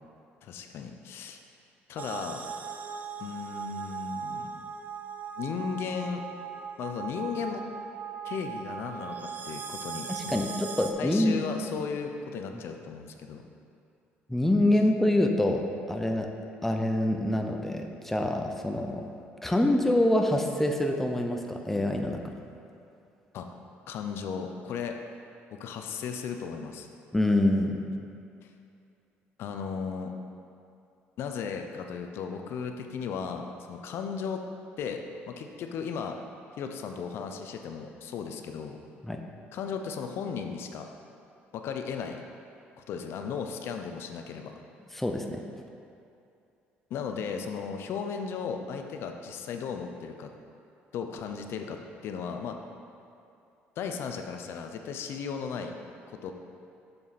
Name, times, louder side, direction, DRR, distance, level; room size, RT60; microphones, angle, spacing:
voice 1, 0.4-1.4 1.9-2.4 3.2-4.6 5.4-6.2 6.8-7.6 8.2-10.5 11.0-13.4 23.3-23.5 23.9-25.0 25.5-26.9 29.4-30.1 31.2-34.4 34.8-36.2 36.6-38.8 39.5-40.9 41.5-42.2 42.9-44.5 46.9-50.3 50.9-52.6 53.8-55.7 56.1-56.3, left 6 dB, 65° left, 5 dB, 0.6 m, -36 dB
sound 1, 2.0-10.9, right 6 dB, 45° right, 0.5 m, -39 dB
voice 2, 10.1-11.4 14.3-16.3 16.6-19.1 19.4-22.3 27.1-27.8 39.0-39.2 44.9-45.4, left 1 dB, 5° left, 3 dB, 0.6 m, -26 dB
7.0 x 6.8 x 4.2 m, 2.6 s
cardioid pair, 110°, 4 cm